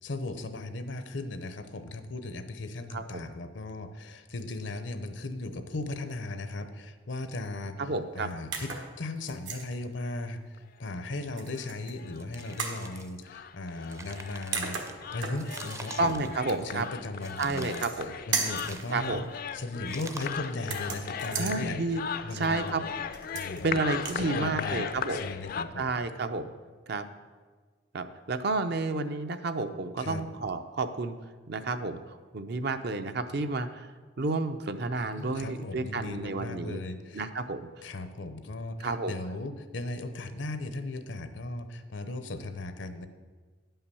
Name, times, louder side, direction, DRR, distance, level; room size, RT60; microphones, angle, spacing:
voice 1, 0.0-19.2 19.5-21.8 22.2-22.8 23.3-23.8 24.1-25.9 30.0-30.3 35.0-37.3 37.8-43.1, left 2 dB, 80° left, 9 dB, 0.8 m, -37 dB
voice 2, 2.9-3.3 7.9-8.3 16.0-16.9 17.4-18.1 18.9-19.2 21.4-22.0 22.3-22.8 23.6-25.2 25.8-26.5 26.9-27.1 27.9-31.2 31.5-32.0 32.3-33.9 34.2-36.8 37.1-37.6 38.8-39.1, right 3 dB, 60° right, 9 dB, 0.6 m, -30 dB
sound 1, 8.5-8.9 9.3-9.7 11.4-11.9 12.6-12.8 14.2-14.3 14.5-15.8 17.5-18.1 18.3-18.7 20.6-21.6 23.1-23.6 23.9-24.2, right 5 dB, 80° right, 1.4 m, -35 dB
sound 2, 10.2-10.3 10.6-10.7 11.0-11.1 11.6-11.7 12.0-25.6, left 7 dB, 50° left, 0.4 m, -38 dB
sound 3, 12.2-13.2 13.7-14.9 15.4-16.9 17.2-18.0 18.4-19.3 19.9-20.5, right 2 dB, 15° right, 0.5 m, -46 dB
9.9 x 5.7 x 6.9 m, 1.4 s
head